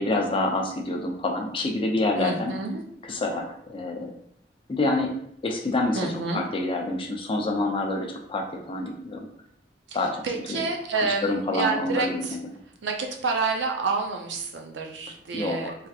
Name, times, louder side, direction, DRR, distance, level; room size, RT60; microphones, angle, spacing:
voice 1, 0.0-2.5 3.0-4.1 4.7-5.1 5.4-9.3 9.9-10.2 10.5-10.7 10.9-12.4 15.3-15.8, left 2 dB, 30° left, 1 dB, 0.4 m, -27 dB
voice 2, 2.2-2.8 6.0-6.4 10.2-12.4 12.8-15.7, right 4 dB, 75° right, 2 dB, 0.5 m, -28 dB
3.3 x 2.7 x 2.4 m, 0.71 s
head